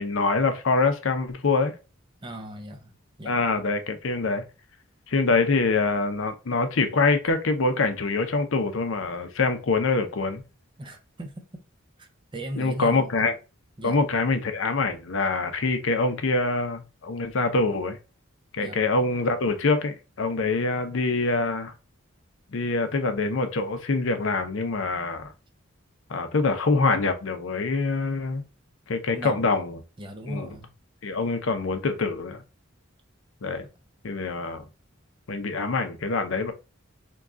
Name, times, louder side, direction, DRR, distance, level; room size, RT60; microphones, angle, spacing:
voice 1, 0.0-1.7 3.2-4.4 5.1-10.4 12.6-13.3 13.8-18.0 18.5-21.7 22.5-25.3 26.1-28.4 28.9-29.8 30.3-30.5 31.0-32.4 33.4-33.7 34.0-34.6 35.3-36.5, left 3 dB, 65° left, 0.6 m, -25 dB
voice 2, 2.2-3.4 10.8-11.5 12.0-13.1 13.8-14.0 18.6-18.8 29.1-29.5 30.0-30.7, equal, 25° right, 0.6 m, -38 dB
3.7 x 2.3 x 3.7 m
head